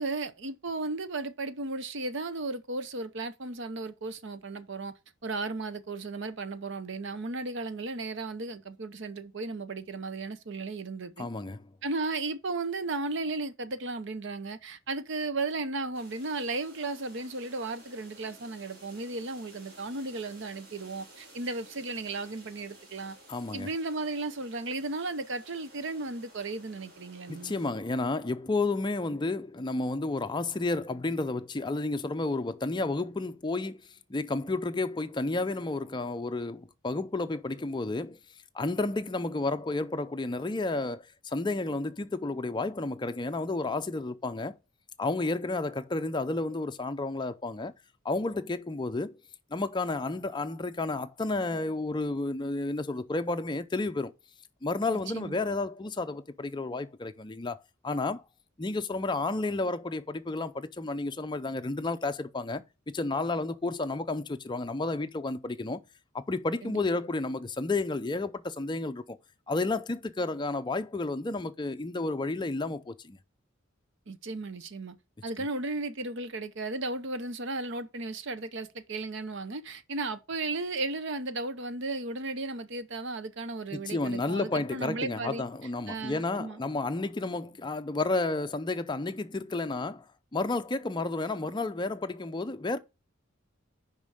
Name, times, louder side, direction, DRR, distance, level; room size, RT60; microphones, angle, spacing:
voice 1, 0.0-4.9 5.2-11.3 11.8-23.2 23.5-27.6 55.1-55.4 66.6-66.8 74.1-75.0 75.2-85.4 85.9-86.6, right 3 dB, 65° right, 0.8 m, -35 dB
voice 2, 11.2-11.7 23.3-23.7 27.3-33.8 34.1-38.2 38.5-44.6 45.0-47.7 48.0-49.2 49.5-54.1 54.6-57.6 57.8-58.2 58.6-65.8 66.1-69.2 69.5-73.2 83.7-90.1 90.3-92.8, left 2 dB, 20° left, 0.5 m, -31 dB
sound 1, 15.9-27.7, right 1 dB, 50° right, 3.0 m, -54 dB
5.4 x 5.2 x 6.3 m
head